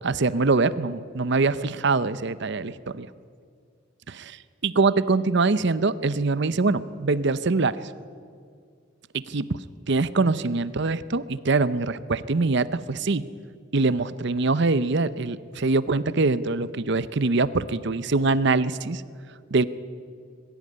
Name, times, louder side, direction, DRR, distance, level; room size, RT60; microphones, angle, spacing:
voice 1, 0.0-3.1 4.1-7.9 9.1-13.2 13.7-19.0 19.5-19.6, right 3 dB, 55° right, 16 dB, 0.7 m, -24 dB
22.0 x 15.5 x 9.5 m, 2.1 s
head